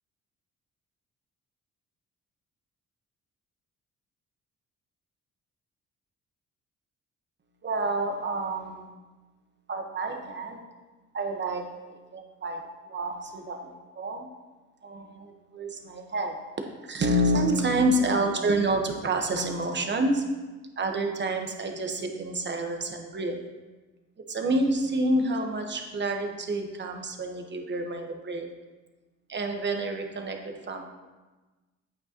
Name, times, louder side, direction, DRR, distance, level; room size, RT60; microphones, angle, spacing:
voice 1, 7.6-8.9 9.7-10.6 11.1-14.3 14.8-16.4 16.8-20.3 20.8-23.4 24.3-28.5 29.3-30.8, right 1 dB, 35° right, 3 dB, 1.2 m, -28 dB
8.5 x 8.3 x 3.0 m, 1.2 s
cardioid pair, 90°, 30 cm